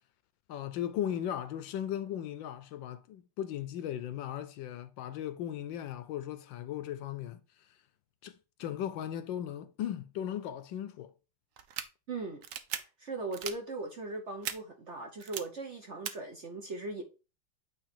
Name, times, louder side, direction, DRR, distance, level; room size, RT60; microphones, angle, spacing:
voice 1, 0.5-7.4 8.2-11.1, left 10 dB, 75° left, 1.3 m, -37 dB
sound 1, 11.6-11.9 12.4-12.8 13.3-13.5 14.4-14.5 15.2-15.4 16.1-16.2, right 9 dB, 85° right, 0.7 m, -36 dB
voice 2, 12.1-12.4 12.8-17.0, right 3 dB, 50° right, 1.0 m, -39 dB
8.7 x 3.1 x 4.3 m
omnidirectional pair, 2.2 m